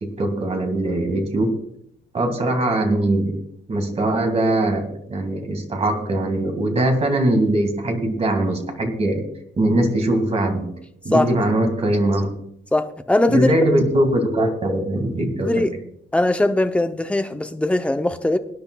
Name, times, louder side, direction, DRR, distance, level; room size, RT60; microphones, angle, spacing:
voice 1, 0.0-1.6 2.1-3.4 3.7-9.2 9.6-10.7 11.1-12.3 13.3-15.6, right 1 dB, 35° right, 1.8 m, -21 dB
voice 2, 12.7-13.5 15.4-15.7 16.1-18.4, left 1 dB, 5° left, 0.5 m, -20 dB
23.5 x 10.0 x 2.2 m
wide cardioid pair, 165°, 19 cm